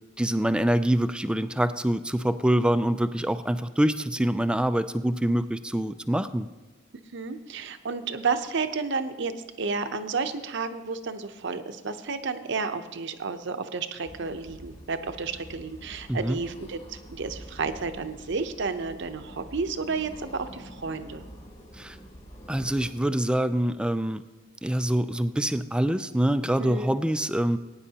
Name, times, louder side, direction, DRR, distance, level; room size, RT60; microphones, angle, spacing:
voice 1, 0.2-6.5 16.1-16.4 21.7-22.0 22.5-24.2 24.6-27.6, right 1 dB, 5° right, 11 dB, 0.3 m, -25 dB
voice 2, 7.1-9.3 9.6-21.2 26.6-26.9, right 4 dB, 65° right, 9 dB, 0.7 m, -31 dB
sound 1, 14.0-22.9, equal, 35° left, 2.8 m, -46 dB
20.5 x 9.8 x 2.9 m, 1.2 s
head